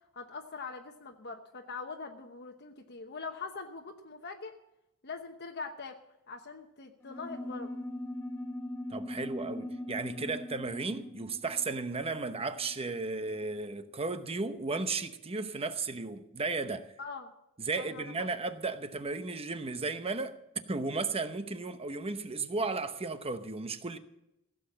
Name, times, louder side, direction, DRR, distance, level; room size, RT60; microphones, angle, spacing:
voice 1, 0.1-4.5 5.0-6.0 6.3-7.7 17.0-17.3 17.8-18.3, left 4 dB, 50° left, 1.1 m, -42 dB
sound 1, 7.0-13.0, left 1 dB, 10° left, 1.3 m, -41 dB
voice 2, 8.9-16.9 17.6-20.4 20.7-24.0, right 3 dB, 25° right, 0.9 m, -34 dB
16.0 x 7.9 x 8.6 m
head